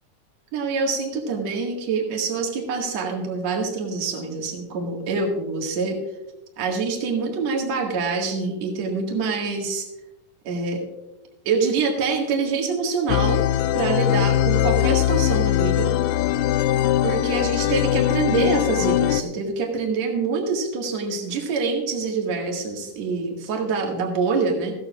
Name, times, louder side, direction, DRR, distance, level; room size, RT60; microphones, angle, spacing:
voice 1, 0.5-6.0 6.6-9.9 10.4-10.8 11.4-13.4 13.7-15.9 17.0-24.7, right 4 dB, 55° right, 1 dB, 2.9 m, -25 dB
sound 1, 13.1-19.2, left 12 dB, 85° left, 2.1 m, -21 dB
15.0 x 14.5 x 2.4 m, 0.94 s
omnidirectional pair, 3.8 m